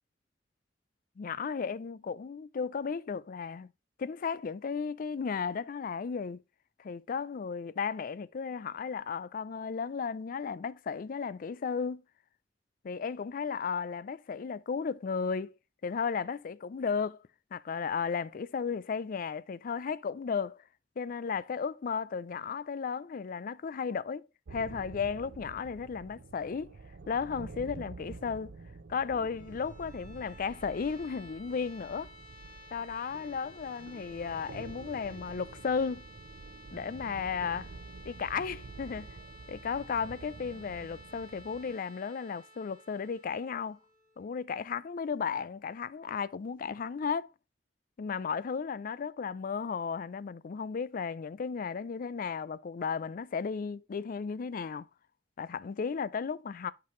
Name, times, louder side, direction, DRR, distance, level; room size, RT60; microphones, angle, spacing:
voice 1, 1.2-3.7 4.0-6.4 6.8-12.0 12.8-15.5 15.8-17.2 17.5-20.6 21.0-26.7 27.1-28.5 28.9-32.1 32.7-36.1 36.7-37.7 38.0-39.1 39.5-43.8 44.2-47.3 48.0-54.9 55.4-56.7, left 6 dB, 50° left, 0.4 m, -34 dB
sound 1, 24.5-41.8, right 3 dB, 65° right, 0.5 m, -48 dB
sound 2, 29.2-45.0, left 1 dB, 75° left, 2.4 m, -54 dB
8.6 x 5.9 x 3.2 m
head